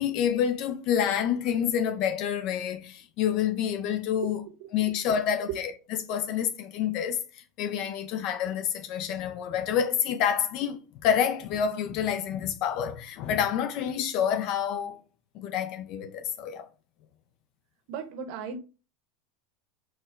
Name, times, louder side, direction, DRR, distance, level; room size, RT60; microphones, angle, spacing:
voice 1, 0.0-4.4 4.7-5.7 6.1-15.0 15.3-16.6, left 8 dB, 55° left, 0.4 m, -28 dB
voice 2, 17.9-18.6, right 6 dB, 60° right, 0.7 m, -36 dB
4.1 x 2.2 x 2.3 m
hypercardioid pair, 90°, 0 cm